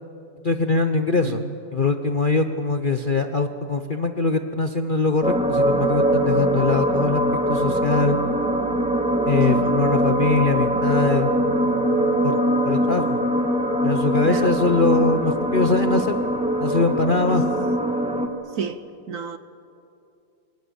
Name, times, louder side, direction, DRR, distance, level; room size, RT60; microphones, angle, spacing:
voice 1, 0.4-1.4 1.7-8.2 9.3-11.3 12.2-12.3 12.6-13.2 13.8-16.2 16.6-17.4, left 3 dB, 45° left, 0.7 m, -22 dB
voice 2, 1.2-1.6 9.5-9.7 14.2-14.5 17.3-17.4 18.5-19.4, right 6 dB, 60° right, 1.0 m, -31 dB
sound 1, 5.2-18.3, right 1 dB, 5° right, 1.6 m, -22 dB
28.0 x 25.0 x 7.1 m
omnidirectional pair, 1.9 m